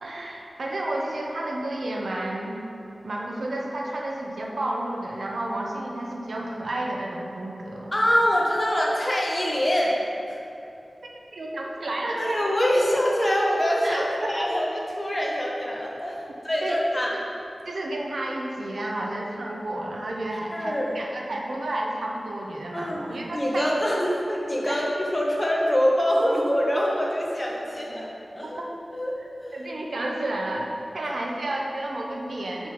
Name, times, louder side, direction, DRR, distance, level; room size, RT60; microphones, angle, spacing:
voice 1, 0.0-2.6 3.0-7.9 11.3-12.5 13.8-14.6 16.6-17.1 17.6-23.7 24.6-24.8 28.6-28.7 29.2-29.3 29.5-32.7, right 1 dB, 75° right, -1 dB, 0.9 m, -31 dB
voice 2, 7.9-10.0 10.3-10.4 12.1-17.1 20.5-21.0 22.7-23.0 23.3-24.8 25.1-28.6 28.9-29.1 29.4-29.6, equal, 25° left, -3 dB, 1.3 m, -24 dB
5.5 x 5.3 x 6.1 m, 2.8 s
wide cardioid pair, 85°, 0 cm